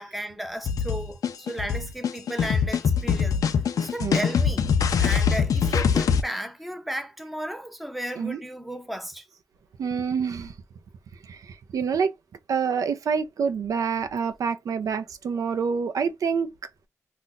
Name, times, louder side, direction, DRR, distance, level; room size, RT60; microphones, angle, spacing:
voice 1, 0.0-3.4 3.8-4.7 5.0-9.3, right 1 dB, ahead, 0.5 m, -34 dB
sound 1, 0.7-6.2, left 6 dB, 85° left, 0.4 m, -23 dB
voice 2, 9.8-10.5 11.2-12.1 12.5-16.5, right 6 dB, 75° right, 0.4 m, -27 dB
2.4 x 2.1 x 3.9 m
wide cardioid pair, 105°, 6 cm